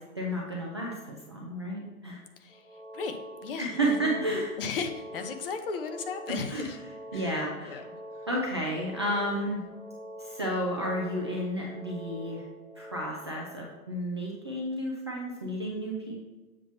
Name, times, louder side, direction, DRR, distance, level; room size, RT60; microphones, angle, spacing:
voice 1, 0.1-2.2 3.6-4.6 6.5-6.7 7.1-7.8 8.3-9.7 10.2-12.4 12.8-16.2, equal, 20° right, -3 dB, 0.3 m, -32 dB
voice 2, 2.4-7.8 8.1-8.3, left 5 dB, 40° left, 6 dB, 0.7 m, -37 dB
sound 1, 2.5-13.0, equal, 15° left, 1.3 m, -45 dB
7.3 x 2.9 x 5.7 m, 1.2 s
figure-of-eight pair, 120°, 46 cm